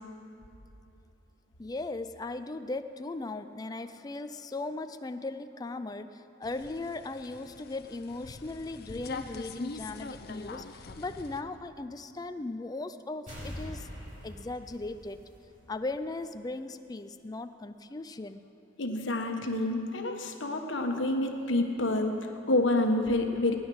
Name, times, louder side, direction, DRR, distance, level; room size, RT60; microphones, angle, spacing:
voice 1, 1.6-13.9 14.2-15.3 15.7-18.5, left 2 dB, 20° left, 9 dB, 0.4 m, -38 dB
sound 1, 6.4-11.4, left 3 dB, 50° left, 0.7 m, -43 dB
sound 2, 13.3-15.9 16.2-16.3, equal, 40° right, 3.9 m, -43 dB
voice 2, 18.8-23.6, left 2 dB, 70° left, 4 dB, 1.3 m, -28 dB
19.5 x 10.5 x 6.3 m, 2.7 s
head